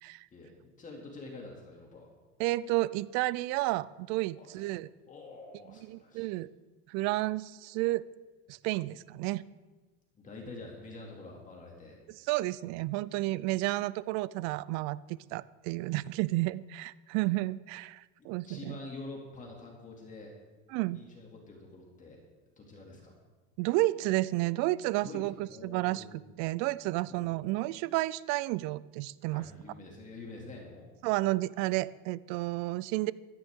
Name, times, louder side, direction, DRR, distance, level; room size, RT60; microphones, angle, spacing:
voice 1, 0.3-2.1 4.3-4.6 5.1-6.3 10.1-12.0 18.4-20.3 20.9-22.2 22.6-23.1 25.0-26.3 27.1-27.3 29.3-30.9, left 2 dB, 20° left, -1 dB, 2.5 m, -47 dB
voice 2, 2.4-4.9 5.9-6.5 6.9-8.0 8.5-9.4 12.3-18.8 20.7-21.0 23.6-26.0 26.4-29.4 31.0-33.1, right 19 dB, 50° right, 20 dB, 0.5 m, -31 dB
16.5 x 13.5 x 3.7 m, 1.2 s
supercardioid pair, 130°, 35 cm